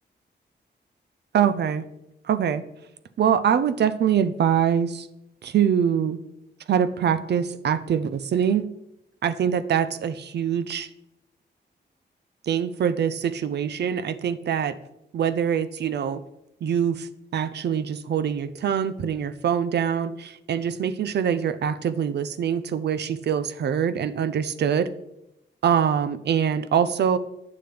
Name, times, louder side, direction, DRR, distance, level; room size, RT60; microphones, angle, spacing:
voice 1, 1.3-1.8 2.2-2.6 3.2-5.1 5.4-6.2 6.7-8.7 9.2-10.9 12.4-14.8 15.1-16.2 16.6-24.9 25.6-27.2, right 8 dB, 70° right, 13 dB, 0.5 m, -24 dB
9.4 x 8.4 x 3.4 m, 0.87 s
wide cardioid pair, 160°, 18 cm